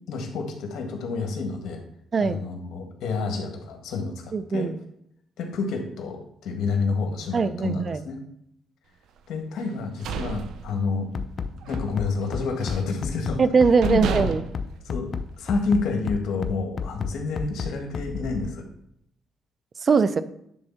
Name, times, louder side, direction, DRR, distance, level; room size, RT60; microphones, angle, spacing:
voice 1, 0.1-1.8 2.2-4.7 5.4-8.2 9.3-11.1 11.7-13.4 13.8-14.3 14.8-18.6, left 4 dB, 80° left, 3 dB, 1.7 m, -29 dB
voice 2, 4.3-4.7 7.3-8.0 13.4-14.4 19.8-20.2, right 5 dB, 40° right, 13 dB, 0.6 m, -21 dB
sound 1, 9.7-11.3 11.6-11.9 12.2-13.0 13.4-13.5 13.8-15.6, right 6 dB, 80° right, 0.7 m, -32 dB
Bass drum, 11.1-18.5, left 6 dB, 50° left, 0.6 m, -31 dB
10.0 x 4.0 x 5.8 m, 0.73 s
cardioid pair, 90°, 0 cm